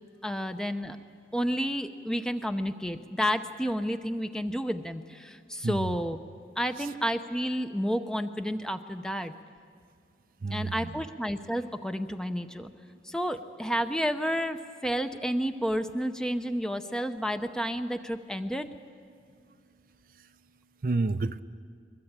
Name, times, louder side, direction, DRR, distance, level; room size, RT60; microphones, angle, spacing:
voice 1, 0.2-1.0 1.3-6.2 6.6-9.3 10.5-12.7 13.0-18.7, equal, 5° left, 8 dB, 0.7 m, -31 dB
voice 2, 5.6-6.0 6.8-6.9 10.4-11.0 20.8-21.4, right 3 dB, 50° right, 11 dB, 0.6 m, -30 dB
22.5 x 21.5 x 8.9 m, 2.2 s
head